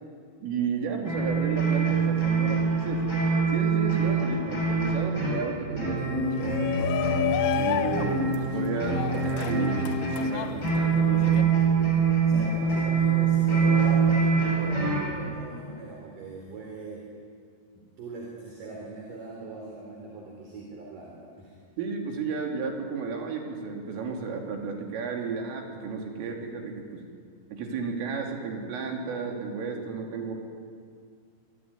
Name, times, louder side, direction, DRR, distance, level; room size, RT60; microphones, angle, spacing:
voice 1, 0.4-3.1 3.5-7.0 7.6-11.5 12.3-12.5 21.8-27.0 27.5-30.3, right 5 dB, 75° right, 2 dB, 5.6 m, -33 dB
sound 1, 1.0-15.1, right 5 dB, 20° left, 6.8 m, -25 dB
Shout, 6.3-11.4, left 10 dB, 80° left, 3.7 m, -31 dB
voice 2, 12.3-17.0 17.7-21.6, right 3 dB, 45° right, -1 dB, 4.8 m, -40 dB
26.0 x 23.0 x 9.8 m, 2.1 s
omnidirectional pair, 5.9 m